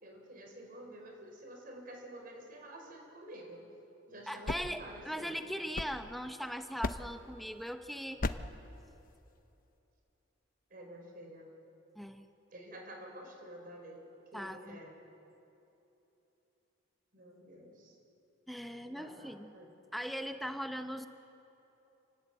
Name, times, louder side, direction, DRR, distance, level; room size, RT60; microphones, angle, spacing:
voice 1, 0.0-3.6 4.1-5.4 10.7-11.5 12.5-14.1 14.3-14.9 17.1-18.0 18.8-19.7, right 1 dB, 50° right, 2 dB, 5.7 m, -50 dB
sound 1, 4.2-6.4 6.8-7.3 8.2-8.6, left 2 dB, 45° left, 0.8 m, -38 dB
voice 2, 4.3-8.2 12.0-12.3 14.3-14.8 18.5-19.5 19.9-21.1, equal, ahead, 7 dB, 0.9 m, -40 dB
28.5 x 19.0 x 8.7 m, 3.0 s
head